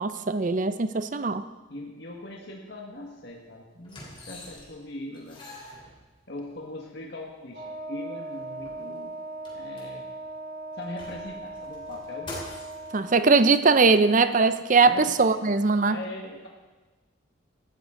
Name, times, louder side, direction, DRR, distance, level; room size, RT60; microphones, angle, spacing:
voice 1, 0.0-1.4 12.9-16.0, right 4 dB, 40° right, 12 dB, 0.6 m, -21 dB
voice 2, 1.7-5.4 6.3-9.2 9.5-10.1 10.7-12.3 14.8-15.1 15.9-16.5, left 1 dB, 55° left, -1 dB, 1.6 m, -40 dB
sound 1, 3.0-3.1 3.8-4.8 5.1-6.5 7.3-7.4 7.6-7.7 8.1-10.3 10.7-12.9 13.7-13.8, left 1 dB, 25° left, 3.6 m, -45 dB
Wind instrument woodwind instrument, 7.5-13.2, right 2 dB, 55° right, 3.2 m, -39 dB
18.0 x 13.5 x 3.8 m, 1.2 s
head